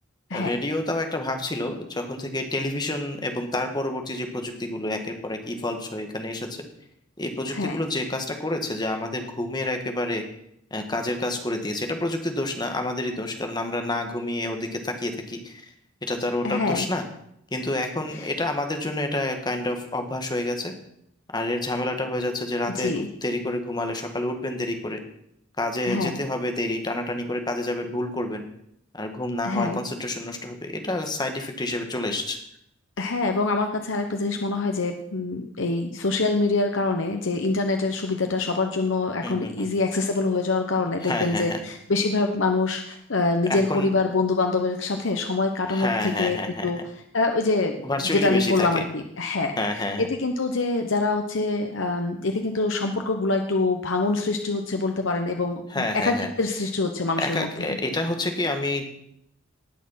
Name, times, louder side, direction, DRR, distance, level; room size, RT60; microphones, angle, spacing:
voice 1, 0.3-6.7 7.2-10.2 10.7-15.6 16.1-17.0 17.5-20.7 21.3-25.0 25.6-28.4 28.9-32.4 39.2-39.7 41.0-41.6 43.5-43.9 45.7-46.7 47.8-48.8 49.6-50.1 55.7-56.3 57.2-58.8, left 1 dB, 20° left, 5 dB, 1.6 m, -28 dB
voice 2, 16.4-16.9 18.1-18.3 22.7-23.1 25.8-26.2 29.4-29.8 33.0-46.8 47.1-57.8, left 3 dB, 70° left, 4 dB, 1.0 m, -25 dB
19.0 x 6.5 x 5.7 m, 0.74 s
head